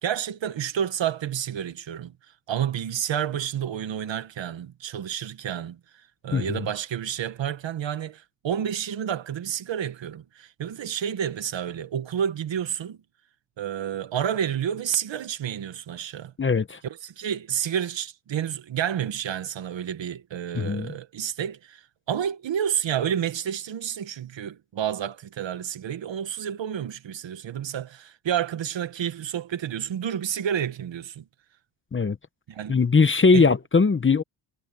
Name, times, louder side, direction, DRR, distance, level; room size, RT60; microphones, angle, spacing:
voice 1, 0.0-2.1 2.5-5.8 6.2-13.0 13.6-16.3 16.8-31.2 32.5-32.8 33.3-33.5, right 9 dB, 60° right, 1.6 m, -30 dB
voice 2, 16.4-16.8 20.5-20.9 31.9-32.2 32.7-34.2, left 4 dB, 25° left, 1.0 m, -20 dB
cardioid pair, 125°, 50 cm